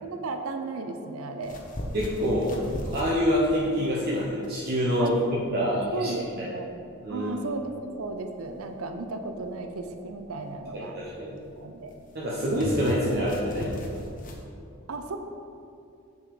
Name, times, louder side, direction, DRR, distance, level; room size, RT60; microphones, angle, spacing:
voice 1, 0.0-1.6 5.0-5.1 5.9-6.7 7.1-11.0 11.6-12.0 14.9-15.2, right 3 dB, 75° right, 6 dB, 0.6 m, -34 dB
sound 1, 1.4-14.4, equal, 40° left, 1.0 m, -39 dB
voice 2, 1.9-2.5 2.9-6.1 6.4-6.5 7.0-7.3 10.7-11.4 12.1-13.7, equal, 45° right, -6 dB, 1.1 m, -26 dB
7.1 x 6.9 x 4.9 m, 2.6 s
head